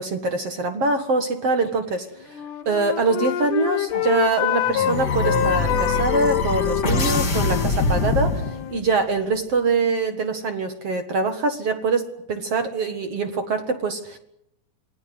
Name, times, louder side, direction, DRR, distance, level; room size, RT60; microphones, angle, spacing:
voice 1, 0.0-2.1 2.7-8.5 8.7-14.2, right 3 dB, 50° right, 7 dB, 2.2 m, -24 dB
Wind instrument woodwind instrument, 2.2-4.9 5.2-8.9, left 11 dB, 65° left, 2.4 m, -26 dB
sound 1, 3.9-8.9, left 3 dB, 30° left, 2.6 m, -24 dB
27.0 x 19.5 x 7.9 m, 0.80 s
omnidirectional pair, 4.4 m